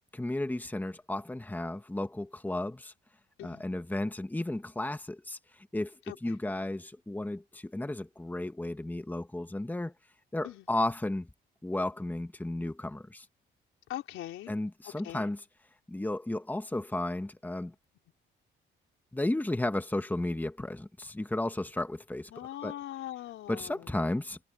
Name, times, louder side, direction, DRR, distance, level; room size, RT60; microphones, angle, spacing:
voice 1, 0.1-2.9 3.4-9.9 10.3-11.3 11.6-13.3 14.5-15.5 15.9-17.7 19.1-22.8 23.5-24.4, left 1 dB, 10° left, 1.7 m, -34 dB
voice 2, 13.9-14.5 15.0-15.3 22.3-23.9, left 13 dB, 85° left, 3.9 m, -41 dB
cardioid pair, 90°, 20 cm